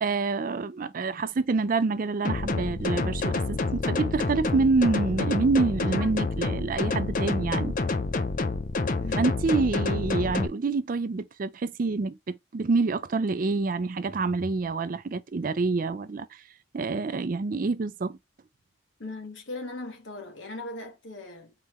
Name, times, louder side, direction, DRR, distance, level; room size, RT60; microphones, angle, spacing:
voice 1, 0.0-7.7 9.2-16.4 16.7-18.2, right 3 dB, 45° right, 0.4 m, -27 dB
sound 1, 2.2-10.5, left 3 dB, 45° left, 0.5 m, -28 dB
voice 2, 19.0-21.5, left 2 dB, 70° left, 1.6 m, -39 dB
4.1 x 3.7 x 3.0 m
head